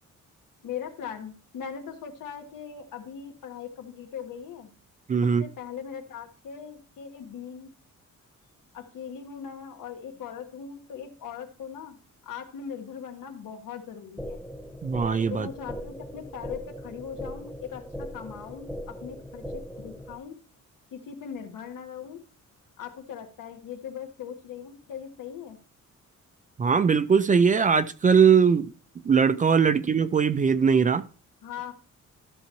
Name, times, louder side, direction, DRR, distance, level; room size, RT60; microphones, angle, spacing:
voice 1, 0.6-4.7 5.4-7.7 8.7-12.0 12.2-14.4 15.3-20.4 20.9-22.2 22.8-25.6 31.4-31.7, left 8 dB, 90° left, 4 dB, 1.7 m, -40 dB
voice 2, 5.1-5.4 14.8-15.5 26.6-28.7 29.0-31.0, right 6 dB, 25° right, 13 dB, 0.4 m, -20 dB
sound 1, 14.2-20.2, equal, ahead, 0.7 m, -39 dB
13.0 x 6.9 x 3.0 m, 0.38 s
wide cardioid pair, 170°, 31 cm